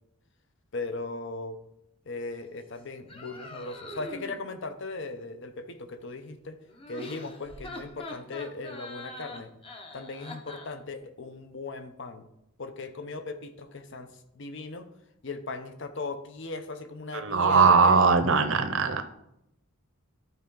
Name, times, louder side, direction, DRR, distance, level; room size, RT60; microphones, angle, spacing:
voice 1, 0.7-1.6 2.1-6.6 6.9-9.5 9.9-12.3 12.6-14.9 15.2-18.0, left 3 dB, 55° left, 8 dB, 0.7 m, -38 dB
sound 1, 3.1-4.4 6.7-10.7, left 1 dB, 25° left, 0.8 m, -43 dB
voice 2, 17.1-19.0, right 5 dB, 60° right, 9 dB, 0.7 m, -20 dB
12.5 x 4.6 x 3.8 m, 0.82 s
head